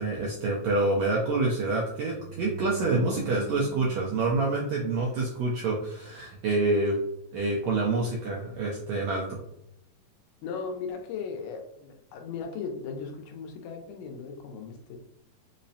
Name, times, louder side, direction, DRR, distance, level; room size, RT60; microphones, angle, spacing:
voice 1, 0.0-7.0 7.3-9.4, right 2 dB, 85° right, -3 dB, 1.6 m, -27 dB
sound 1, 2.0-5.2, right 4 dB, 65° right, 1.9 m, -42 dB
voice 2, 10.4-15.0, left 5 dB, 85° left, 3 dB, 2.2 m, -37 dB
5.4 x 2.0 x 2.6 m, 0.77 s
omnidirectional pair, 3.8 m